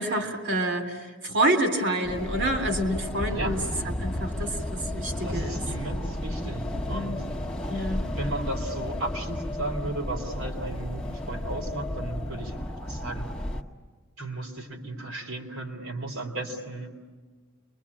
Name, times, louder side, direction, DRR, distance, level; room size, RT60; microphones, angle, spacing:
voice 1, 0.0-5.6 6.7-7.2 7.7-8.1, right 1 dB, 55° right, 5 dB, 3.4 m, -28 dB
sound 1, 2.0-13.6, left 1 dB, 5° left, 1.4 m, -33 dB
voice 2, 5.2-7.2 8.2-13.3 14.2-16.9, right 2 dB, 70° right, 2 dB, 3.8 m, -35 dB
29.0 x 23.5 x 8.7 m, 1.4 s
head